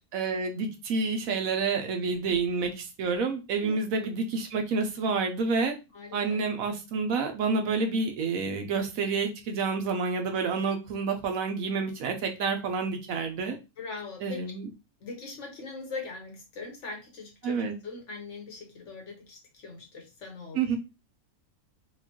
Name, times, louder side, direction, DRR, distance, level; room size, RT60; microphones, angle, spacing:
voice 1, 0.1-5.7 6.1-13.6 14.2-14.7 17.4-17.7 20.5-20.8, right 4 dB, 70° right, 5 dB, 1.1 m, -29 dB
voice 2, 3.6-4.1 5.9-6.2 13.8-14.4 15.0-20.6, left 4 dB, 55° left, 1 dB, 1.3 m, -41 dB
4.4 x 2.4 x 2.9 m, 0.28 s
omnidirectional pair, 1.6 m